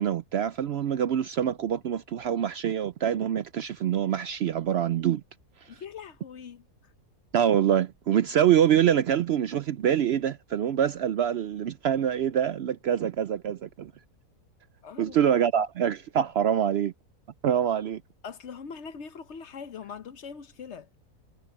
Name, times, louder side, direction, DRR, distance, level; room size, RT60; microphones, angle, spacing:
voice 1, 0.0-5.2 5.6-5.8 7.3-13.9 15.0-16.9 17.4-18.0, right 9 dB, 75° right, 0.6 m, -25 dB
voice 2, 5.7-6.6 14.8-15.2 18.2-20.9, left 6 dB, 55° left, 1.0 m, -41 dB
omnidirectional pair, 1.6 m